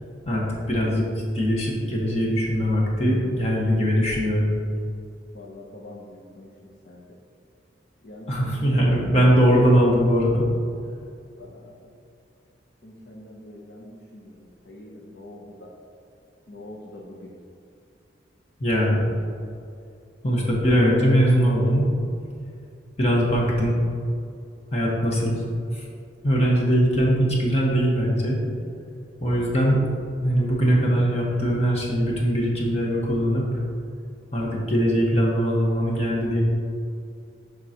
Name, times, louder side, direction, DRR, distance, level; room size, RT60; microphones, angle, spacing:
voice 1, 0.2-4.5 8.3-10.5 18.6-19.0 20.2-21.9 23.0-23.8 24.7-25.5 25.7-25.9 26.2-28.4 29.2-29.8 30.2-33.6 34.3-36.4, equal, 35° left, -4 dB, 1.4 m, -21 dB
voice 2, 5.3-7.2 8.0-9.4 11.4-11.9 12.8-15.7 16.5-17.3, left 1 dB, 65° left, -3 dB, 0.8 m, -43 dB
11.5 x 3.9 x 3.0 m, 2.5 s
head